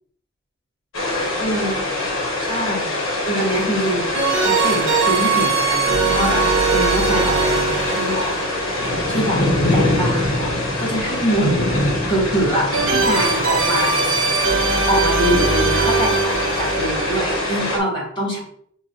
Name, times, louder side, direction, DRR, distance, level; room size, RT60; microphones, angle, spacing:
sound 1, 0.9-17.8, left 1 dB, 90° left, 1.0 m, -23 dB
voice 1, 1.4-1.8 2.4-2.9 3.2-6.4 6.7-8.4 9.1-9.4 9.7-11.5 12.0-14.0 14.9-18.4, equal, 25° left, -4 dB, 1.5 m, -24 dB
sound 2, 1.7-1.8 4.2-10.2 12.7-17.8, right 4 dB, 90° right, 0.8 m, -21 dB
6.1 x 2.3 x 2.5 m, 0.66 s
head